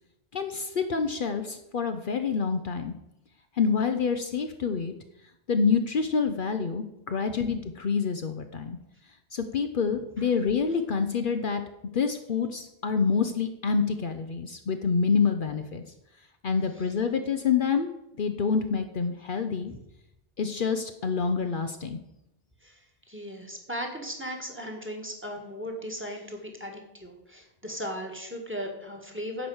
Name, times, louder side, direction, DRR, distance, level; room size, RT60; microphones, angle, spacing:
voice 1, 0.3-2.9 3.6-4.9 5.5-8.8 9.3-11.6 11.9-15.8 16.4-17.9 18.2-19.7 20.4-22.0, left 5 dB, 60° left, 7 dB, 0.8 m, -27 dB
voice 2, 23.1-29.5, equal, 10° right, 3 dB, 1.7 m, -37 dB
10.5 x 5.0 x 7.8 m, 0.86 s
omnidirectional pair, 1.0 m